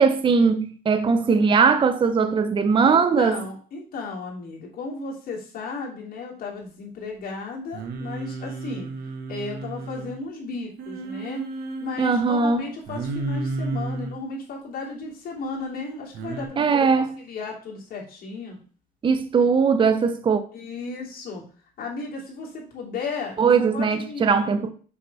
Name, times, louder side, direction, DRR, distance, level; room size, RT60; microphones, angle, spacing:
voice 1, 0.0-3.4 12.0-12.7 16.6-17.1 19.0-20.4 23.4-24.7, right 5 dB, 30° right, 0.7 m, -20 dB
voice 2, 2.8-8.9 9.3-11.5 11.8-18.6 20.5-21.4 21.8-24.3, left 4 dB, 60° left, 3.0 m, -34 dB
Singing, 7.7-10.2 10.8-12.0 12.9-14.2 16.1-16.5, right 3 dB, 70° right, 1.4 m, -32 dB
7.1 x 5.6 x 3.4 m
cardioid pair, 110°, 17 cm